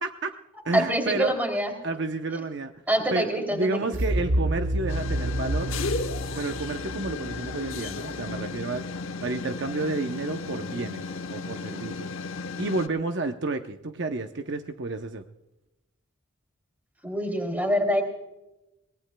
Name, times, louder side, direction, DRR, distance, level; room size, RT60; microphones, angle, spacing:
voice 1, 0.0-0.3 0.6-1.4 1.8-2.7 3.1-5.7 6.2-8.9 9.2-12.1 12.6-15.2, right 3 dB, 55° right, 6 dB, 0.7 m, -30 dB
voice 2, 0.7-1.7 2.9-3.9 17.0-18.0, equal, 10° right, 4 dB, 2.9 m, -25 dB
sound 1, 3.9-8.8, right 1 dB, 75° right, 1.0 m, -29 dB
sound 2, 4.9-12.9, left 4 dB, 80° left, 1.0 m, -35 dB
23.5 x 18.5 x 2.2 m, 0.94 s
head